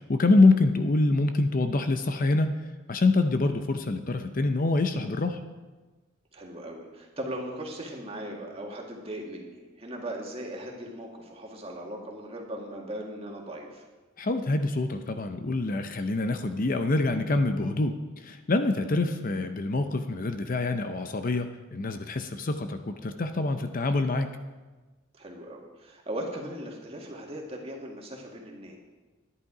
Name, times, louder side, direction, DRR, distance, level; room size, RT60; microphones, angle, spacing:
voice 1, 0.1-5.4 14.2-24.3, left 2 dB, 45° left, 8 dB, 0.6 m, -25 dB
voice 2, 6.3-13.8 18.8-19.0 25.2-28.8, right 1 dB, 30° right, 0 dB, 1.8 m, -38 dB
11.0 x 10.5 x 4.9 m, 1.3 s
head